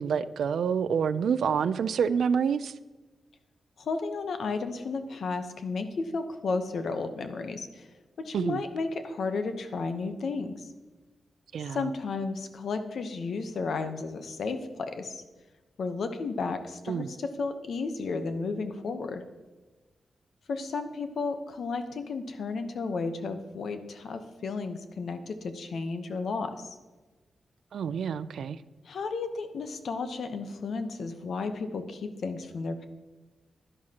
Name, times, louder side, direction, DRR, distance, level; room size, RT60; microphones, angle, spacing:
voice 1, 0.0-2.7 8.3-8.6 11.5-11.9 16.9-17.1 27.7-28.6, right 7 dB, 80° right, 15 dB, 0.4 m, -27 dB
voice 2, 3.8-7.9 8.2-10.7 11.7-15.2 15.8-19.2 20.5-26.8 28.9-32.8, left 4 dB, 65° left, 8 dB, 0.9 m, -33 dB
11.0 x 11.0 x 2.9 m, 1.2 s
wide cardioid pair, 180°, 0 cm